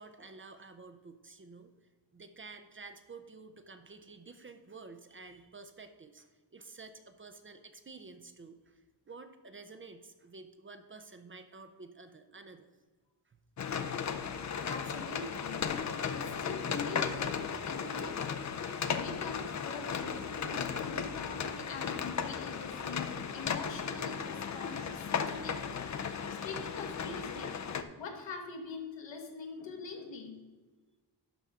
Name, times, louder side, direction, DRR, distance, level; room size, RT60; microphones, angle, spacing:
voice 1, 0.0-1.7 2.1-8.8 9.1-12.7 13.3-13.4, right 4 dB, 30° right, 8 dB, 0.4 m, -51 dB
sound 1, 13.6-27.8, left 6 dB, 40° left, 0.5 m, -36 dB
voice 2, 14.7-30.4, left 4 dB, 85° left, 3 dB, 1.4 m, -44 dB
12.0 x 5.5 x 3.6 m, 1.3 s
wide cardioid pair, 175°, 44 cm